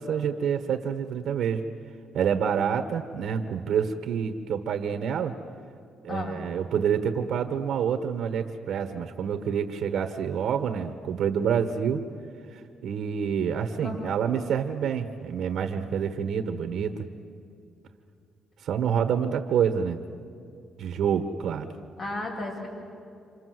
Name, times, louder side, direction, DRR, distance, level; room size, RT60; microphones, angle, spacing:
voice 1, 0.0-1.6 2.1-5.3 6.0-12.0 12.8-17.1 18.6-20.0 20.8-21.7, right 7 dB, 75° right, 7 dB, 1.4 m, -27 dB
voice 2, 6.1-6.5 13.8-14.2 22.0-22.7, left 2 dB, 55° left, 0 dB, 7.7 m, -34 dB
27.5 x 27.5 x 7.9 m, 2.5 s
cardioid pair, 90°, 0 cm